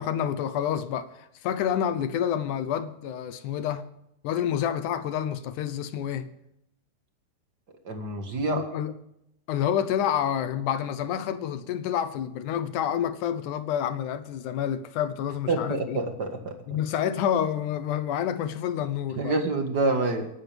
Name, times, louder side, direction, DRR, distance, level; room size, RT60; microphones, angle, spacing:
voice 1, 0.0-3.9 4.2-6.3 8.5-8.9 9.5-16.0 16.7-19.3, left 9 dB, 75° left, 2.0 m, -28 dB
voice 2, 7.8-8.6 15.5-16.5 19.1-20.3, right 2 dB, 40° right, 1.6 m, -27 dB
23.5 x 12.0 x 3.5 m
omnidirectional pair, 4.2 m